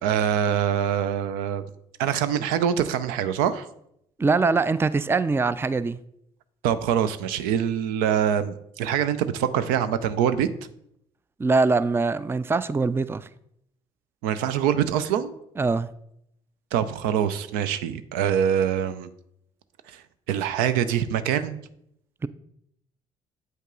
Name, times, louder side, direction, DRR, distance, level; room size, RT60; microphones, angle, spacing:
voice 1, 0.0-1.6 2.0-3.7 6.6-10.5 14.2-15.3 16.7-19.1 19.9-21.6, right 9 dB, 75° right, 0.5 m, -24 dB
voice 2, 4.2-6.0 11.4-13.3 15.6-15.9 22.2-22.3, right 4 dB, 15° right, 0.4 m, -23 dB
7.7 x 5.3 x 3.8 m
hypercardioid pair, 55°, 15 cm